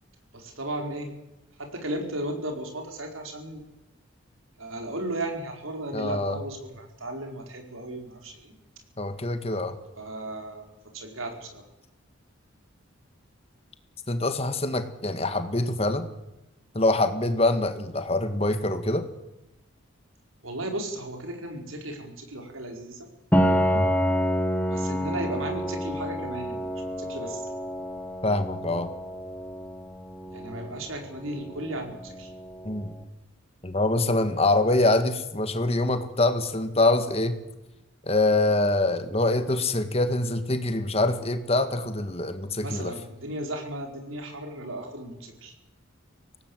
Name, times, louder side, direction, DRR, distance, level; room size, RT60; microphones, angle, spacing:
voice 1, 0.3-1.1 1.6-3.6 4.6-8.5 10.0-11.6 20.4-23.1 24.7-26.6 27.0-27.5 30.2-32.3 42.6-45.5, right 1 dB, 80° right, 4 dB, 4.8 m, -35 dB
voice 2, 5.9-6.4 9.0-9.8 14.1-16.1 16.7-19.0 23.7-24.0 28.2-28.9 32.7-32.9 33.6-37.4 38.1-42.9, left 2 dB, 30° left, 9 dB, 1.8 m, -25 dB
Piano, 23.3-32.9, equal, 10° left, 2.0 m, -28 dB
25.0 x 18.0 x 8.0 m, 0.97 s
head